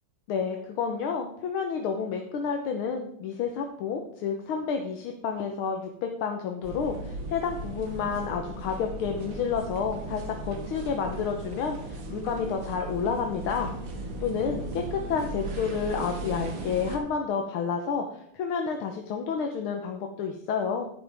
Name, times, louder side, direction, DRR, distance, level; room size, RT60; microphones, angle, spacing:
voice 1, 0.3-13.7 14.2-20.9, left 6 dB, 85° left, 3 dB, 1.8 m, -30 dB
sound 1, 6.6-17.0, right 2 dB, 70° right, 2.3 m, -37 dB
10.5 x 10.5 x 3.5 m, 0.73 s
omnidirectional pair, 2.3 m